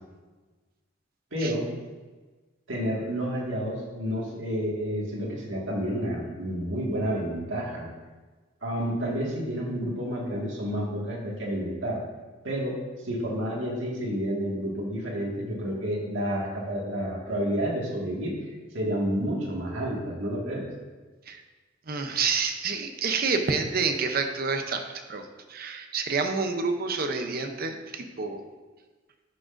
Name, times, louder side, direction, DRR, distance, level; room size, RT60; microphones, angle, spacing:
voice 1, 1.3-1.7 2.7-7.9 8.6-12.0 12.4-12.8 13.1-18.3 18.7-20.7, equal, 70° right, -3 dB, 1.9 m, -30 dB
voice 2, 21.9-24.8 25.1-28.4, right 4 dB, 50° right, 6 dB, 0.7 m, -28 dB
11.0 x 6.2 x 2.6 m, 1.3 s
head